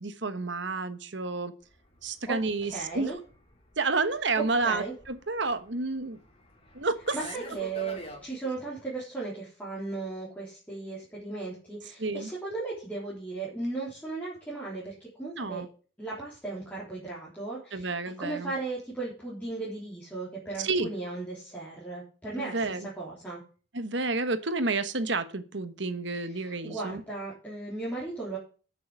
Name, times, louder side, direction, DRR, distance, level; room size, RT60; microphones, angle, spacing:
voice 1, 0.0-1.5 2.0-3.1 3.8-6.2 6.7-7.2 12.0-12.3 15.4-15.7 17.7-18.5 20.6-20.9 22.4-22.9 23.7-27.0, right 3 dB, 60° right, 11 dB, 1.2 m, -30 dB
Fixed-wing aircraft airplane, 1.7-8.2, left 1 dB, 30° left, 2.5 m, -48 dB
voice 2, 2.6-3.2 4.6-4.9 7.1-15.6 16.0-23.4 26.2-28.4, right 3 dB, 10° left, -8 dB, 3.7 m, -36 dB
9.4 x 6.8 x 7.5 m, 0.38 s
head